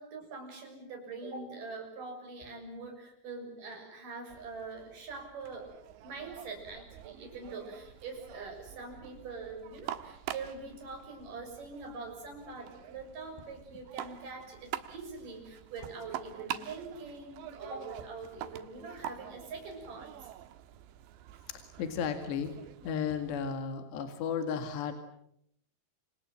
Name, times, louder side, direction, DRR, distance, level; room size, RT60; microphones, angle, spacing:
voice 1, 0.0-5.7 6.0-20.3, right 3 dB, 45° right, 3 dB, 8.0 m, -44 dB
sound 1, 4.3-23.5, right 12 dB, 75° right, 3.4 m, -46 dB
voice 2, 21.5-22.5 22.8-24.9, left 7 dB, 65° left, 7 dB, 4.0 m, -34 dB
28.5 x 26.5 x 7.7 m, 0.74 s
omnidirectional pair, 5.5 m